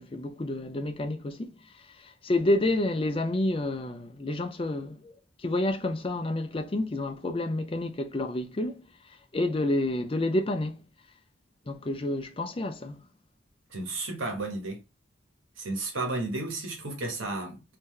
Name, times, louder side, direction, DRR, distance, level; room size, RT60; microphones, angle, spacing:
voice 1, 0.0-5.1 5.4-8.8 9.3-10.8 11.7-13.0, left 1 dB, 30° left, 0.4 m, -29 dB
voice 2, 13.7-14.8 15.6-17.6, right 2 dB, 90° right, 1.3 m, -33 dB
3.8 x 2.7 x 3.1 m
head